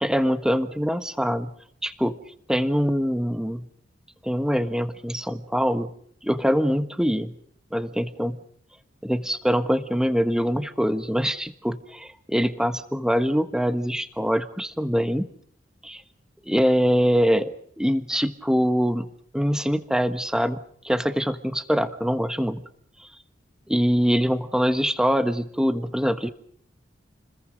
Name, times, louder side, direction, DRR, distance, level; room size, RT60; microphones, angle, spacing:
voice 1, 0.0-1.5 1.8-2.2 2.5-3.7 4.2-5.9 6.2-7.3 7.7-8.4 9.0-15.3 15.8-16.0 16.5-22.7 23.7-26.3, equal, 5° right, 10 dB, 1.4 m, -24 dB
30.0 x 21.5 x 5.2 m, 0.64 s
head